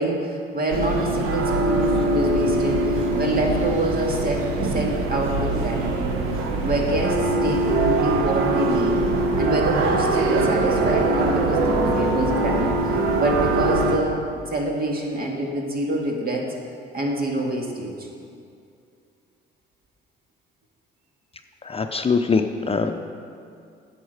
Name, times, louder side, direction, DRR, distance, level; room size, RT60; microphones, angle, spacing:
voice 1, 0.0-6.2 6.6-9.0 9.4-16.5 16.9-18.1, right 1 dB, 45° right, 0 dB, 2.1 m, -26 dB
sound 1, 0.7-14.0, right 2 dB, 85° right, 1.0 m, -22 dB
voice 2, 21.6-22.9, left 4 dB, 25° left, 6 dB, 0.6 m, -22 dB
10.0 x 7.3 x 6.6 m, 2.4 s
supercardioid pair, 70°, 21 cm